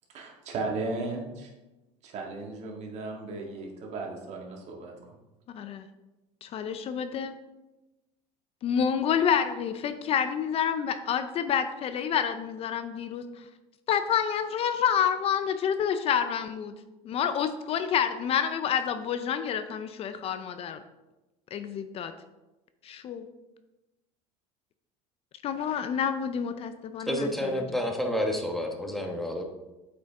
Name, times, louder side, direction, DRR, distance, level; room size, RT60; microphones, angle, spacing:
voice 1, 0.1-1.5 2.0-4.9, right 3 dB, 50° right, 0 dB, 1.9 m, -35 dB
voice 2, 5.5-5.8 6.4-7.3 8.6-13.2 13.9-16.7 17.0-20.8 21.5-22.1 22.8-23.2 25.4-27.5, left 8 dB, 40° left, 10 dB, 0.5 m, -28 dB
voice 3, 27.1-29.4, equal, ahead, 2 dB, 1.1 m, -29 dB
8.0 x 5.1 x 3.5 m, 1.0 s
supercardioid pair, 120°, 15 cm